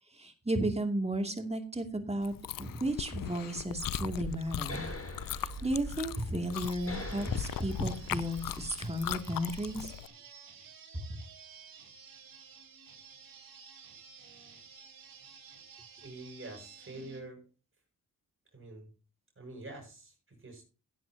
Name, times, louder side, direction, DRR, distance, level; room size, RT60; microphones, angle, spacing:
voice 1, 0.1-4.9 5.4-9.9 10.9-11.0, right 1 dB, 15° right, 5 dB, 2.5 m, -34 dB
Chewing mastication, 2.2-10.1, left 12 dB, 60° left, 0.6 m, -39 dB
sound 1, 3.7-8.7, left 1 dB, 35° left, 7.7 m, -43 dB
sound 2, 6.5-17.2, right 6 dB, 65° right, 3.6 m, -53 dB
voice 2, 16.0-17.5 18.5-18.9 19.3-20.6, right 2 dB, 35° right, 2 dB, 6.6 m, -46 dB
16.0 x 9.5 x 2.8 m, 0.32 s
cardioid pair, 70°, 38 cm